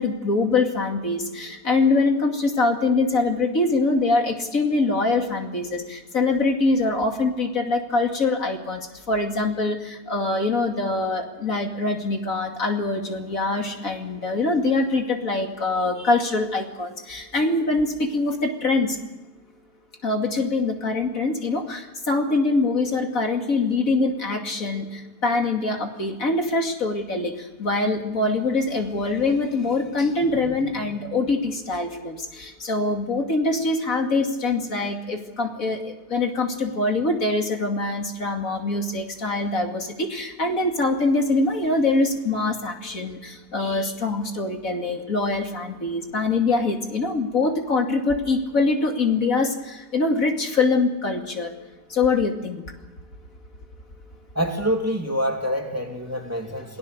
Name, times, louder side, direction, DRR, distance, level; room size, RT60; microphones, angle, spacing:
voice 1, 0.0-19.0 20.0-51.5 51.9-52.6, left 3 dB, 60° left, 3 dB, 2.9 m, -24 dB
voice 2, 54.3-56.8, equal, 10° right, 2 dB, 2.8 m, -26 dB
29.0 x 19.0 x 6.8 m, 1.1 s
omnidirectional pair, 1.6 m